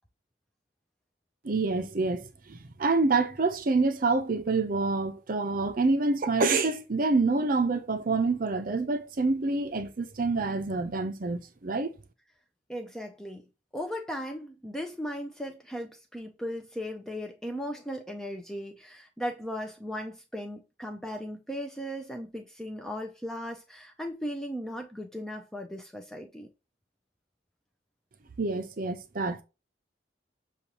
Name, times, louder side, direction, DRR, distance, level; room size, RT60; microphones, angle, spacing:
voice 1, 1.4-11.9 28.4-29.4, right 3 dB, 45° right, 0.5 m, -27 dB
voice 2, 12.7-13.5 13.7-26.5, equal, 5° left, 0.4 m, -37 dB
6.8 x 2.4 x 2.9 m
head